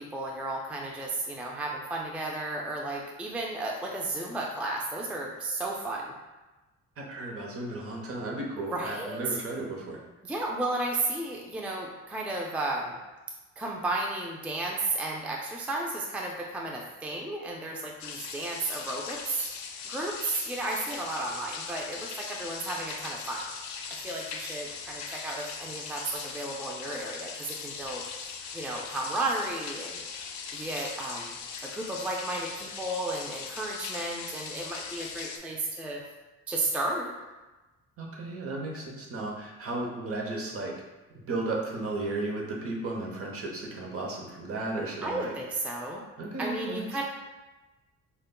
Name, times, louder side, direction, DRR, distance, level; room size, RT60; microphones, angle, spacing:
voice 1, 0.0-6.1 8.7-9.4 10.2-13.0 13.6-19.5 19.9-23.4 24.0-28.0 28.5-30.0 30.5-31.4 31.6-36.0 36.5-37.1 45.0-46.0 46.4-47.0, right 2 dB, 5° right, -1 dB, 0.3 m, -33 dB
voice 2, 7.0-10.0 38.0-40.7 41.1-45.3 46.2-47.0, right 2 dB, 50° right, -1 dB, 0.8 m, -34 dB
sound 1, 18.0-35.4, left 5 dB, 65° left, 0.5 m, -40 dB
5.0 x 2.2 x 2.2 m, 1.1 s
cardioid pair, 90°, 30 cm